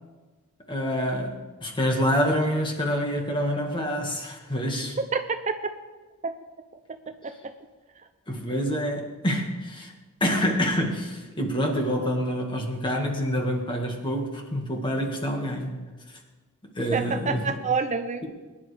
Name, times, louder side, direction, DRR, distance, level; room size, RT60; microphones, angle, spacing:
voice 1, 0.7-5.0 8.3-9.9 10.2-15.7 16.8-17.6, equal, 20° left, 2 dB, 1.7 m, -27 dB
voice 2, 7.1-7.5 16.9-18.2, right 5 dB, 30° right, 8 dB, 0.5 m, -28 dB
22.5 x 10.5 x 3.4 m, 1.3 s
head